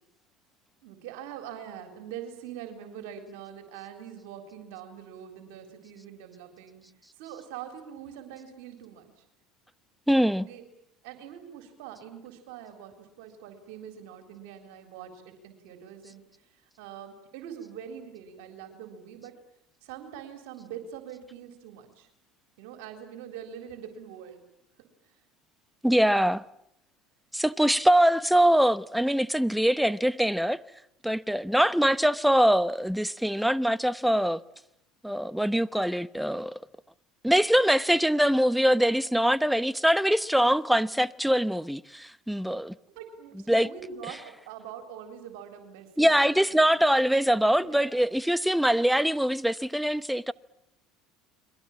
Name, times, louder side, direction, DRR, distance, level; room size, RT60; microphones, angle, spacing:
voice 1, 0.8-6.8 7.2-9.2 10.4-10.6 11.0-19.4 19.8-22.1 22.6-24.4 24.8-24.9 42.9-46.7 47.6-48.1, right 9 dB, 75° right, 3.9 m, -44 dB
voice 2, 10.1-10.5 25.8-26.4 27.3-30.6 31.0-34.4 35.0-36.6 37.2-42.8 43.5-43.7 46.0-50.3, equal, ahead, 0.9 m, -23 dB
29.5 x 22.5 x 7.4 m
supercardioid pair, 85°, 0 cm